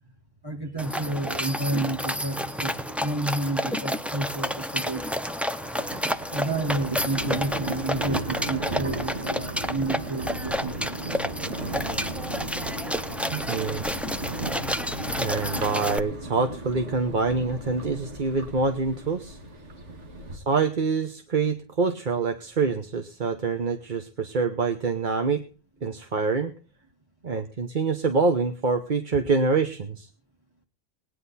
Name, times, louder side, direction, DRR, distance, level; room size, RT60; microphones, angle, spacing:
voice 1, 0.4-5.2 6.3-11.0, right 2 dB, 20° right, 0 dB, 1.5 m, -30 dB
sound 1, 0.8-16.0, equal, ahead, 0.4 m, -30 dB
Thunder, 5.6-20.4, right 2 dB, 70° right, 2.3 m, -35 dB
voice 2, 13.3-13.8 15.2-19.4 20.3-25.4 25.8-26.5 27.2-30.1, right 4 dB, 45° right, 7 dB, 1.1 m, -26 dB
19.5 x 9.9 x 4.2 m, 0.36 s
omnidirectional pair, 1.3 m